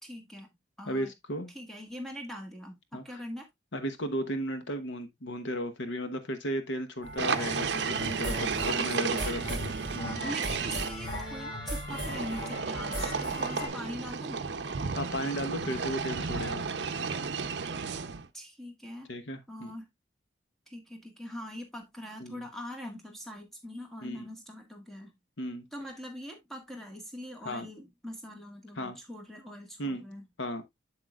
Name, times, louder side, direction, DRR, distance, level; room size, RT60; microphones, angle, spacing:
voice 1, 0.0-0.5 0.8-1.1 1.5-3.5 8.7-9.2 10.2-14.4 18.3-19.1 19.5-19.9 20.7-25.1 25.7-30.3, equal, ahead, 1.6 m, -42 dB
voice 2, 0.9-1.5 2.9-3.2 3.7-10.2 14.9-16.7 19.1-19.7 22.2-22.5 24.0-24.3 25.4-25.6 27.4-27.7 28.8-29.0 29.8-30.0 30.4-30.6, equal, 80° left, 1.1 m, -35 dB
sound 1, 7.0-13.7, equal, 25° left, 4.4 m, -37 dB
sound 2, 7.2-10.9 11.9-18.3, right 5 dB, 65° right, 0.6 m, -33 dB
7.9 x 7.7 x 2.3 m
head